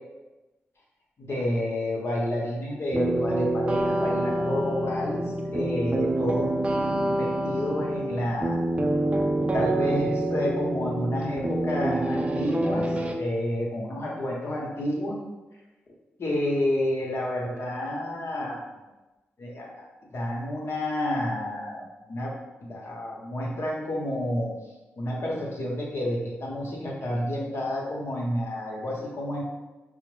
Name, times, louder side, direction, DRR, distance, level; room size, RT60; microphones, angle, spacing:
voice 1, 1.2-5.2 5.5-8.6 9.3-15.2 16.2-18.6 19.4-22.3 22.6-24.5 25.0-29.4, left 1 dB, 65° left, -3 dB, 1.1 m, -30 dB
sound 1, 2.9-13.2, right 1 dB, 25° right, 0.4 m, -27 dB
4.9 x 2.1 x 3.3 m, 1.1 s
cardioid pair, 55°, 5 cm